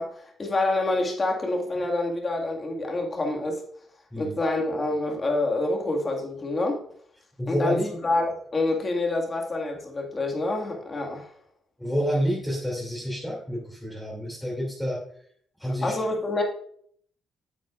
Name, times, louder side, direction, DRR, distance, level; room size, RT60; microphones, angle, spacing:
voice 1, 0.0-3.6 4.2-6.8 7.5-11.3 15.8-16.4, left 2 dB, 30° left, 1 dB, 1.9 m, -27 dB
voice 2, 7.4-7.9 11.8-15.0 15.6-16.0, equal, 5° left, -5 dB, 2.7 m, -28 dB
9.8 x 7.8 x 2.5 m, 0.62 s
cardioid pair, 90°, 0 cm